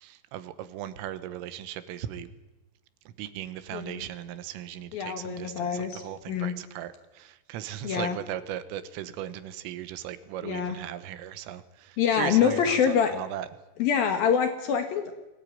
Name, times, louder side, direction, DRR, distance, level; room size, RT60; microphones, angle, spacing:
voice 1, 0.0-2.3 3.1-13.5, right 11 dB, 85° right, 13 dB, 3.8 m, -37 dB
voice 2, 4.9-6.0 6.3-6.5 7.8-8.2 10.4-10.8 12.0-13.1 13.8-15.1, left 7 dB, 65° left, 7 dB, 2.6 m, -25 dB
22.5 x 17.5 x 9.4 m, 1.1 s
omnidirectional pair, 5.8 m